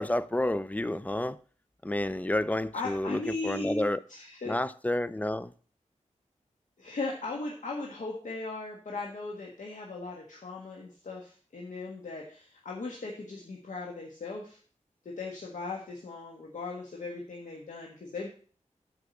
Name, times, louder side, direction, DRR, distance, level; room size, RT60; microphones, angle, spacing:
voice 1, 0.0-1.4 1.8-4.0 4.5-5.5, left 1 dB, 10° left, 0.5 m, -30 dB
voice 2, 2.7-4.6 6.8-14.6 15.0-18.3, left 3 dB, 75° left, 1.5 m, -38 dB
8.2 x 4.9 x 7.0 m
wide cardioid pair, 90°, 13 cm